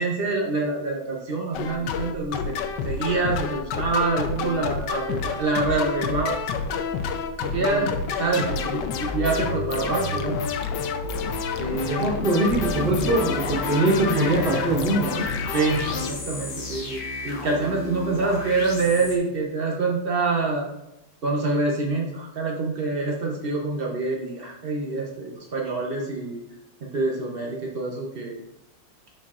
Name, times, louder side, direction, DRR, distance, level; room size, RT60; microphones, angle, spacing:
voice 1, 0.0-2.5 2.8-6.8 7.5-10.4 11.6-12.1 15.5-20.6 21.2-26.4 26.8-28.4, right 3 dB, 85° right, -1 dB, 0.5 m, -26 dB
sound 1, 1.5-16.1, left 6 dB, 70° left, 1.1 m, -29 dB
voice 2, 7.5-7.9 8.2-8.5 11.8-15.3, right 2 dB, 55° right, -6 dB, 1.9 m, -23 dB
sound 2, 12.4-19.2, left 2 dB, 45° left, 0.7 m, -34 dB
11.5 x 4.4 x 2.4 m, 0.92 s
omnidirectional pair, 2.2 m